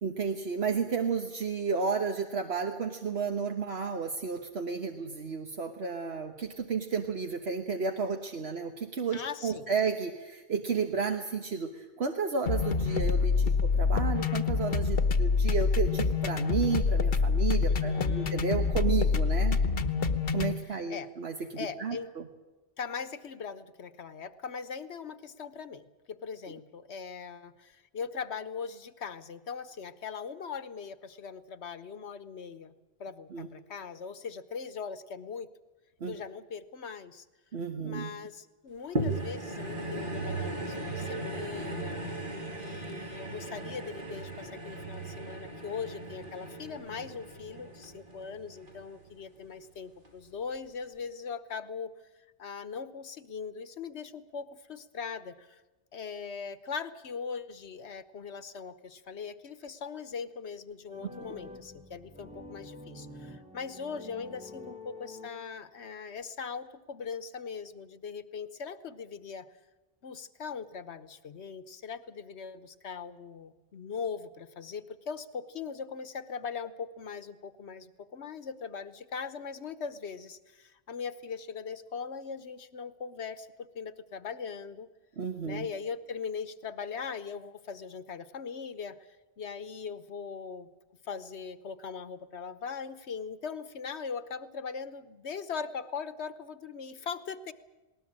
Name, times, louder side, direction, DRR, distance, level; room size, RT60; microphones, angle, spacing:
voice 1, 0.0-19.6 20.3-22.3 33.3-33.5 36.0-36.2 37.5-38.1 85.2-85.7, right 5 dB, 70° right, 5 dB, 1.6 m, -32 dB
voice 2, 9.1-9.7 17.6-18.4 18.8-19.2 20.7-21.1 21.6-22.1 22.8-32.7 33.0-35.5 36.1-37.2 37.8-42.3 42.6-51.9 52.4-55.6 55.9-69.5 70.0-83.5 83.7-84.9 85.4-90.7 91.0-97.5, left 6 dB, 80° left, 14 dB, 1.4 m, -40 dB
sound 1, 12.5-20.5, left 5 dB, 60° left, 1.2 m, -26 dB
sound 2, 39.0-49.4 50.1-50.2, right 1 dB, 50° right, 2.8 m, -37 dB
sound 3, 60.9-65.9, left 2 dB, 5° right, 1.5 m, -47 dB
20.0 x 19.0 x 8.8 m, 1.1 s
omnidirectional pair, 1.1 m